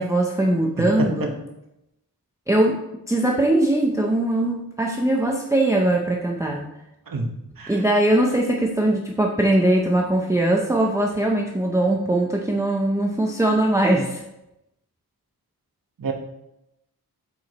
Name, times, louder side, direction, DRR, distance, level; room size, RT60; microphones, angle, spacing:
voice 1, 0.0-1.3 2.5-2.8 3.1-6.7 7.7-14.2, right 1 dB, 10° right, 0 dB, 0.6 m, -21 dB
voice 2, 0.8-1.3 7.1-7.8 16.0-16.1, right 3 dB, 60° right, 2 dB, 1.2 m, -28 dB
7.2 x 4.8 x 4.1 m, 0.89 s
wide cardioid pair, 125°, 39 cm